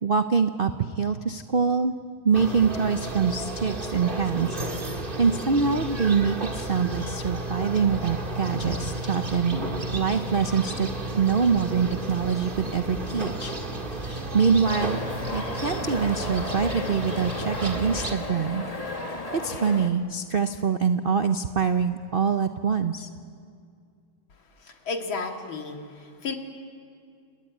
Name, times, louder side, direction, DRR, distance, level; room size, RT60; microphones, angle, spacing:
voice 1, 0.0-1.9 2.2-4.6 4.8-9.6 9.9-10.9 11.1-13.5 13.9-15.0 15.3-23.1, right 6 dB, 75° right, 8 dB, 0.5 m, -25 dB
sound 1, 2.3-18.1, right 2 dB, 25° right, 2.0 m, -32 dB
sound 2, 14.6-19.9, left 2 dB, 20° left, 1.5 m, -34 dB
voice 2, 24.6-26.4, left 4 dB, 75° left, 3 dB, 3.0 m, -33 dB
29.5 x 20.5 x 9.4 m, 2.3 s
omnidirectional pair, 2.2 m